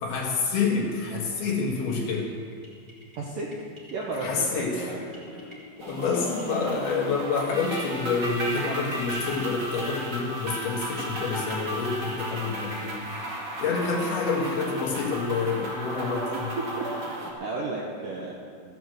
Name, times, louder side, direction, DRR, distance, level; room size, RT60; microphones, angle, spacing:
voice 1, 0.0-2.3 4.2-4.9 5.3-5.4 5.9-13.3 13.6-16.5, left 4 dB, 65° left, -1 dB, 3.1 m, -28 dB
sound 1, 1.9-10.2, equal, 15° right, 1.5 m, -50 dB
voice 2, 3.2-3.5 3.9-5.2 16.3-16.5 16.8-18.3, right 3 dB, 70° right, -3 dB, 2.1 m, -34 dB
sound 2, 5.8-17.3, right 1 dB, 40° right, 1.6 m, -34 dB
15.0 x 9.2 x 7.8 m, 2.3 s
omnidirectional pair, 5.5 m